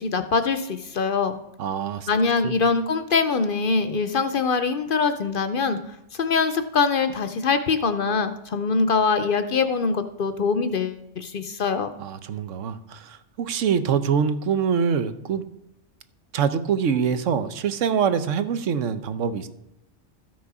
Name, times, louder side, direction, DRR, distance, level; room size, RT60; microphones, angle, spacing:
voice 1, 0.0-1.4 2.1-5.8 6.1-11.9, left 4 dB, 55° left, 10 dB, 0.7 m, -23 dB
voice 2, 1.6-2.1 2.4-2.6 12.0-15.4 16.3-19.5, right 7 dB, 80° right, 11 dB, 1.1 m, -24 dB
13.5 x 6.2 x 4.8 m, 0.85 s
omnidirectional pair, 1.3 m